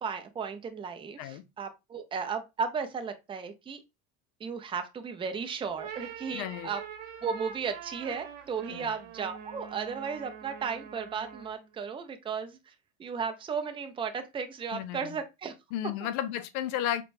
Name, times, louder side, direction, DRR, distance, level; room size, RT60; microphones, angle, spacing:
voice 1, 0.0-3.8 4.4-6.8 7.2-12.7 13.0-15.5, right 6 dB, 15° right, 0.4 m, -35 dB
sound 1, 5.6-11.6, right 8 dB, 70° right, 0.9 m, -44 dB
voice 2, 6.3-6.7 8.7-8.9 14.7-15.2 15.7-17.0, left 11 dB, 75° left, 0.6 m, -33 dB
4.3 x 2.2 x 2.4 m
hypercardioid pair, 90°, 44 cm